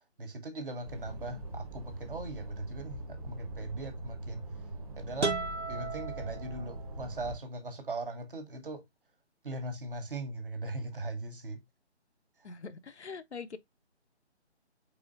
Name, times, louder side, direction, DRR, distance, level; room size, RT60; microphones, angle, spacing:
voice 1, 0.2-4.5 5.0-5.4 5.7-8.8 9.4-11.6, right 2 dB, 50° right, 1.2 m, -39 dB
sound 1, 0.8-7.3, right 1 dB, 30° right, 1.3 m, -42 dB
sound 2, 5.2-7.1, right 3 dB, 90° right, 1.3 m, -35 dB
voice 2, 12.4-13.6, left 5 dB, 75° left, 0.6 m, -43 dB
4.8 x 4.1 x 2.5 m
figure-of-eight pair, 145°, 34 cm